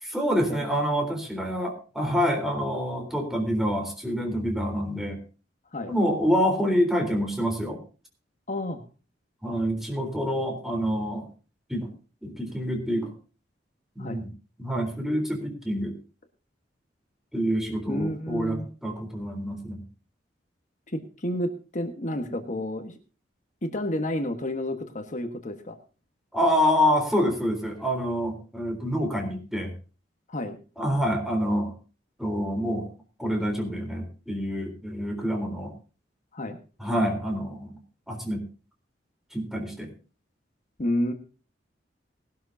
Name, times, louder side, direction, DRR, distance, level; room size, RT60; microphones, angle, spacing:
voice 1, 0.0-5.2 5.9-7.8 9.4-11.3 11.7-11.9 12.2-13.1 14.0-14.3 14.6-16.0 17.3-19.8 26.3-29.7 30.8-31.7 32.2-32.9 33.2-35.7 36.8-37.8 38.1-38.4 39.3-39.9, equal, ahead, 3 dB, 3.8 m, -27 dB
voice 2, 8.5-8.8 14.0-14.2 17.9-18.7 20.9-22.9 23.6-25.8 30.3-30.6 36.3-36.6 40.8-41.1, left 1 dB, 45° left, 6 dB, 1.4 m, -30 dB
19.5 x 12.0 x 2.8 m, 0.35 s
head